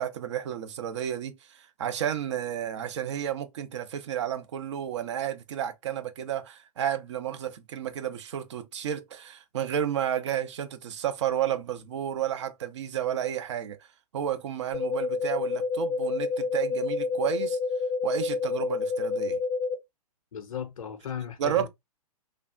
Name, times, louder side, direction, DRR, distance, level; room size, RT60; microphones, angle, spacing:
voice 1, 0.0-13.9 14.1-17.6 18.0-19.4 21.4-21.7, right 10 dB, 50° right, 0.5 m, -31 dB
sound 1, 14.7-19.7, left 4 dB, 5° left, 0.5 m, -28 dB
voice 2, 20.3-21.7, left 8 dB, 60° left, 0.5 m, -36 dB
3.2 x 2.3 x 2.4 m
figure-of-eight pair, 115°, 20 cm